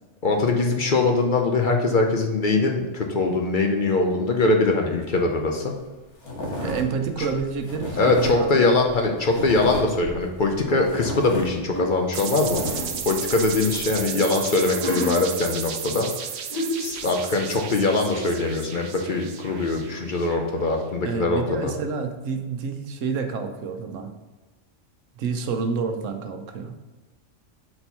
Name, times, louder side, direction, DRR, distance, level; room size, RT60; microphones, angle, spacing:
voice 1, 0.2-5.7 8.0-12.6 13.1-16.1 16.8-21.7, left 3 dB, 50° left, 2 dB, 0.7 m, -22 dB
sound 1, 5.2-5.3 5.5-5.8 6.2-14.0, left 1 dB, 70° left, 1.5 m, -35 dB
voice 2, 6.6-8.7 21.0-24.1 25.2-26.7, right 5 dB, 90° right, 5 dB, 1.1 m, -28 dB
sound 2, 11.7-11.9 12.5-13.8 14.5-15.1 16.1-16.2 16.5-17.0, left 1 dB, 15° left, 1.9 m, -30 dB
sound 3, 12.1-20.7, right 7 dB, 65° right, 0.8 m, -34 dB
4.4 x 4.3 x 5.4 m, 1.2 s
omnidirectional pair, 1.3 m